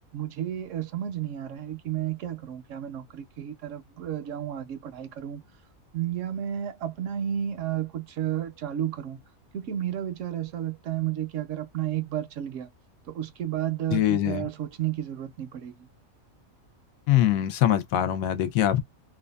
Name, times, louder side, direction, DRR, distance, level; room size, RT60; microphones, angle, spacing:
voice 1, 0.1-5.4 5.9-9.2 9.5-12.7 13.1-15.9, right 11 dB, 70° right, 0.9 m, -32 dB
voice 2, 13.9-14.5 17.1-18.8, left 12 dB, 80° left, 1.0 m, -23 dB
2.6 x 2.3 x 2.2 m
omnidirectional pair, 1.4 m